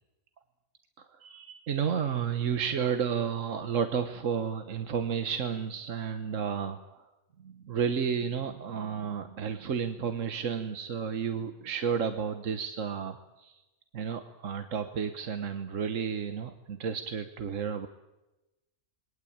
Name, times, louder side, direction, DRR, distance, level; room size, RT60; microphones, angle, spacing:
voice 1, 1.0-7.0 7.4-13.6 13.9-17.9, right 7 dB, 75° right, 9 dB, 1.5 m, -32 dB
27.5 x 21.5 x 8.7 m, 1.0 s
omnidirectional pair, 1.3 m